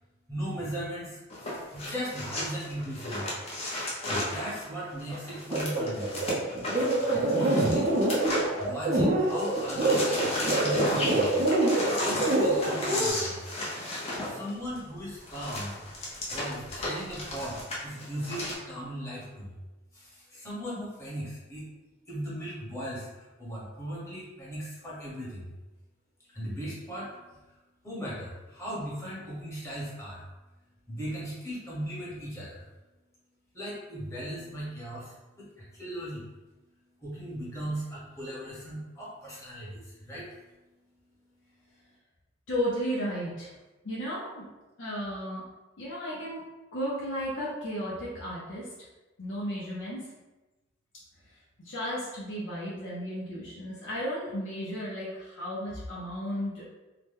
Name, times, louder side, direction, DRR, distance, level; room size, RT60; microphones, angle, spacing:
voice 1, 0.3-3.2 4.0-6.1 7.1-7.9 8.6-11.3 12.0-13.4 14.3-15.7 16.0-17.6 17.8-19.5 19.9-21.7 22.1-25.5 26.3-27.4 27.8-30.2 30.9-32.6 33.5-36.3 37.0-40.4, equal, 15° left, -8 dB, 1.1 m, -37 dB
sound 1, 1.3-9.0 9.3-18.5, left 1 dB, 30° left, 0.7 m, -34 dB
sound 2, 5.5-13.1, right 2 dB, 40° right, 0.5 m, -26 dB
voice 2, 42.5-43.5 43.8-44.4 44.8-45.4 45.8-46.4 46.7-48.9 49.2-50.0 51.6-56.8, equal, 75° left, -7 dB, 0.7 m, -34 dB
2.8 x 2.1 x 3.4 m, 1.1 s
head